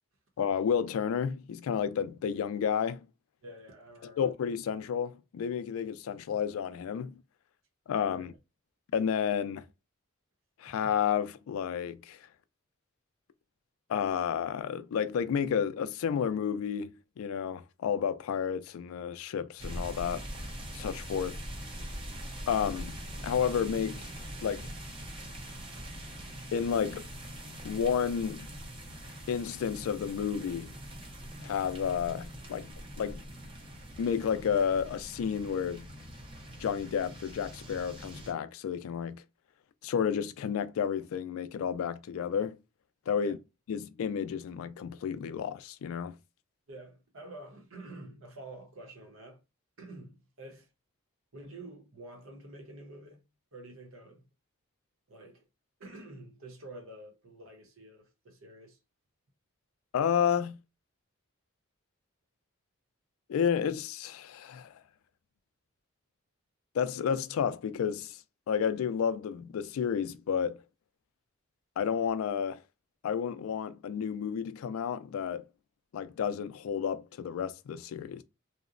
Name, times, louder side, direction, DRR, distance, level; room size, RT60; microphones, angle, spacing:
voice 1, 0.4-3.0 4.0-7.2 7.9-8.3 8.9-9.6 10.6-12.2 13.9-20.2 20.7-21.4 22.5-23.0 23.2-24.1 24.4-24.7 26.5-27.1 27.6-28.5 29.3-30.7 31.4-32.7 33.0-33.2 34.0-35.9 36.6-39.2 39.8-42.6 43.1-43.4 43.7-46.2 59.9-60.6 63.3-64.8 66.7-68.2 68.5-70.6 71.8-72.6 73.0-75.4 75.9-78.2, left 7 dB, 80° left, 0.3 m, -31 dB
voice 2, 3.4-4.3 8.1-8.3 43.2-43.4 46.7-49.4 49.8-50.7 51.3-53.2 53.5-54.3 55.1-55.5 55.8-58.8, right 2 dB, 80° right, 0.8 m, -48 dB
sound 1, 19.6-38.3, equal, 25° right, 0.5 m, -43 dB
2.9 x 2.0 x 2.4 m
head